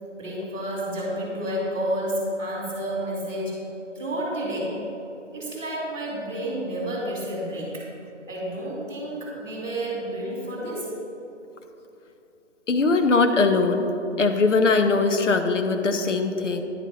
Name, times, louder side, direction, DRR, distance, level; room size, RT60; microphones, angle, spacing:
voice 1, 0.2-3.6 3.9-4.8 5.3-7.9 8.3-10.9, right 1 dB, ahead, -19 dB, 0.7 m, -30 dB
voice 2, 12.7-13.9 14.2-16.6, left 3 dB, 75° left, 7 dB, 0.8 m, -21 dB
10.0 x 3.7 x 5.5 m, 3.0 s
hypercardioid pair, 165°, 37 cm